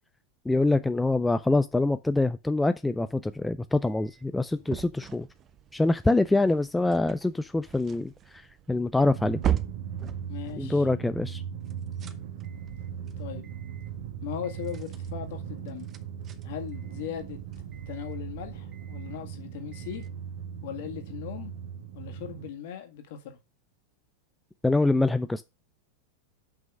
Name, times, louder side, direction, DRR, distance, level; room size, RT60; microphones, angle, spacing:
voice 1, 0.5-5.3 5.7-8.4 8.7-9.4 10.6-11.4 24.6-25.4, left 2 dB, 5° left, 0.4 m, -25 dB
sound 1, 3.8-10.6 11.6-20.1, right 10 dB, 30° right, 0.7 m, -39 dB
Drum, 9.1-22.5, right 8 dB, 55° right, 1.7 m, -38 dB
voice 2, 10.3-10.8 13.2-13.5 14.2-15.9 16.4-17.4 17.9-20.0 20.6-21.5 21.9-23.4, left 10 dB, 50° left, 1.9 m, -38 dB
6.1 x 5.6 x 6.4 m
figure-of-eight pair, 90°, 0 cm